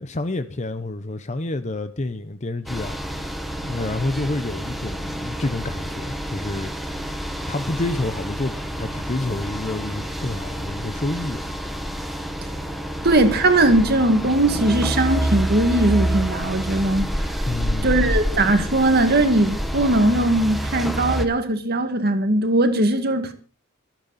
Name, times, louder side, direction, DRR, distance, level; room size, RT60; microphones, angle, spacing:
voice 1, 0.0-3.0 3.6-6.8 7.5-11.4 17.5-18.0, left 2 dB, 35° left, 0.7 m, -28 dB
sound 1, 2.7-21.3, equal, ahead, 1.4 m, -28 dB
voice 2, 13.0-17.1 17.8-23.3, right 2 dB, 50° right, 2.1 m, -19 dB
24.5 x 9.0 x 4.1 m
head